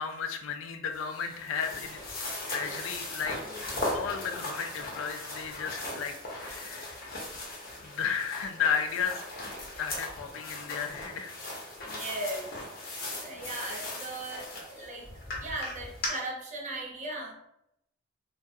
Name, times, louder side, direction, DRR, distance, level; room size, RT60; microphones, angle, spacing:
voice 1, 0.0-2.2 2.5-3.4 3.9-7.0 7.8-9.2 9.6-11.3, left 7 dB, 75° left, 6 dB, 0.3 m, -34 dB
sound 1, 0.9-16.1, left 2 dB, 50° left, 0.8 m, -38 dB
voice 2, 3.5-3.9 11.8-12.5 13.2-15.1 15.4-17.4, right 2 dB, 40° right, -1 dB, 0.6 m, -38 dB
2.3 x 2.2 x 2.6 m, 0.79 s
head